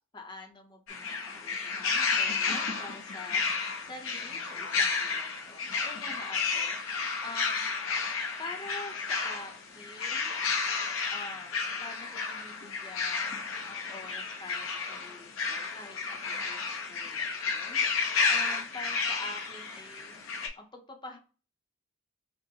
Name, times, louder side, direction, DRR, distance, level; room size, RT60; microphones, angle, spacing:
voice 1, 0.1-3.4 3.9-7.7 8.4-10.4 11.1-13.3 13.7-17.8 18.3-20.2 20.5-21.2, left 2 dB, 20° left, 3 dB, 0.7 m, -46 dB
sound 1, 0.9-20.5, left 5 dB, 80° left, 0.8 m, -32 dB
6.0 x 2.1 x 2.8 m, 0.37 s
head